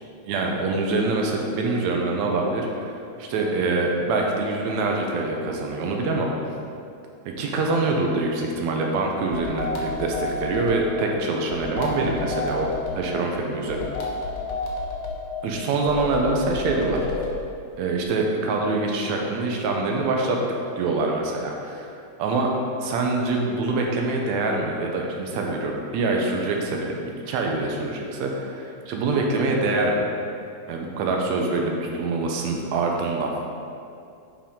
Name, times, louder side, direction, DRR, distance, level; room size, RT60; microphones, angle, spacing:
voice 1, 0.3-6.3 7.4-12.7 13.0-13.9 15.4-17.1 17.8-20.4 20.8-21.9 22.2-22.5 22.8-30.1 30.7-33.3, right 3 dB, 75° right, 0 dB, 2.1 m, -25 dB
sound 1, 9.3-10.9 11.5-13.0 13.7-15.2 15.9-17.4, left 3 dB, 70° left, 2.2 m, -30 dB
10.0 x 4.7 x 3.7 m, 2.5 s
omnidirectional pair, 3.3 m